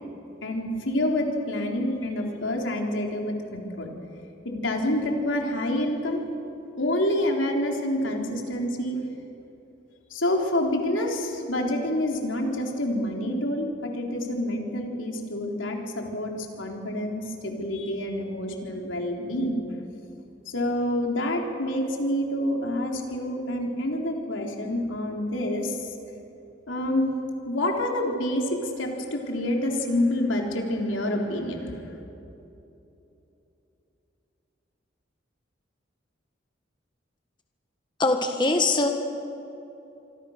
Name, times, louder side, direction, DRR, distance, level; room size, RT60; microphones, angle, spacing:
voice 1, 0.4-3.9 4.4-6.2 6.8-9.0 10.1-19.6 20.5-25.9 26.7-27.1 27.5-31.7, left 1 dB, 90° left, 1 dB, 3.8 m, -27 dB
voice 2, 38.0-38.9, left 2 dB, 25° left, 4 dB, 1.5 m, -22 dB
26.5 x 24.0 x 6.6 m, 3.0 s
head